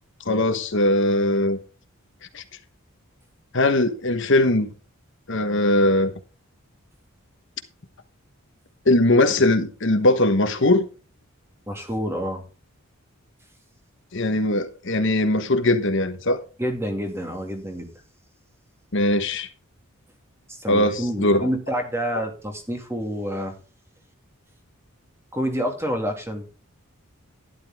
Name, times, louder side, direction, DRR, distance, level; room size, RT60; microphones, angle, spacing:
voice 1, 0.3-1.6 2.3-2.4 3.5-4.7 5.3-6.1 8.9-10.9 14.1-16.4 18.9-19.5 20.7-21.5, left 1 dB, 55° left, 1.2 m, -20 dB
voice 2, 11.7-12.4 16.6-17.9 20.5-23.5 25.3-26.5, equal, 10° right, 2.2 m, -28 dB
12.0 x 11.0 x 3.6 m
head